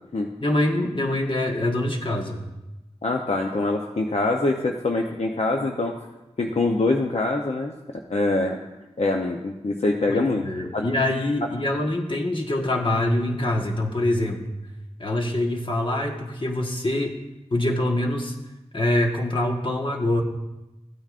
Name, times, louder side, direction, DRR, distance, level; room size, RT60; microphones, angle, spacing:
voice 1, 0.4-2.4 10.1-14.4 15.0-17.1 17.5-18.3 18.7-20.2, left 1 dB, 50° left, 2 dB, 1.4 m, -24 dB
voice 2, 3.0-6.0 6.4-7.8 8.1-8.6 9.0-10.4 10.7-10.8, left 2 dB, 70° left, 1 dB, 0.8 m, -24 dB
15.0 x 9.0 x 2.5 m, 1.0 s
wide cardioid pair, 50°, 11 cm